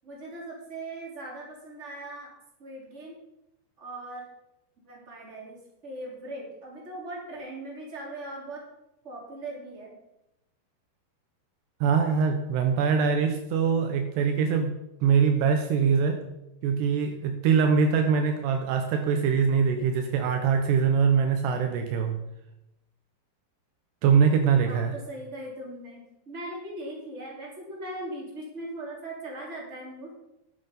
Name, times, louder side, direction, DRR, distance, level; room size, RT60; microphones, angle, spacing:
voice 1, 0.0-2.3 2.6-3.2 3.8-4.2 4.8-5.6 5.8-8.6 9.0-10.0 24.7-30.1, right 1 dB, 20° right, -2 dB, 2.9 m, -39 dB
voice 2, 11.8-16.2 16.6-22.1 24.0-24.9, right 6 dB, 75° right, 5 dB, 2.8 m, -23 dB
10.5 x 9.0 x 5.5 m, 0.88 s
omnidirectional pair, 5.1 m